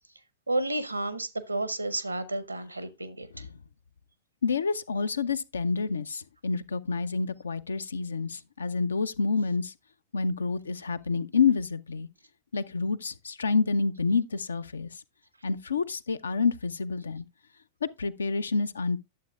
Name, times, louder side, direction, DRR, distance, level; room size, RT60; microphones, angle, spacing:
voice 1, 0.5-3.4, right 2 dB, 85° right, 0.6 m, -31 dB
voice 2, 4.4-9.7 10.1-12.1 12.5-15.0 15.4-17.3 17.8-19.0, left 4 dB, 75° left, 0.4 m, -28 dB
11.5 x 7.4 x 2.3 m
figure-of-eight pair, 90°, 0 cm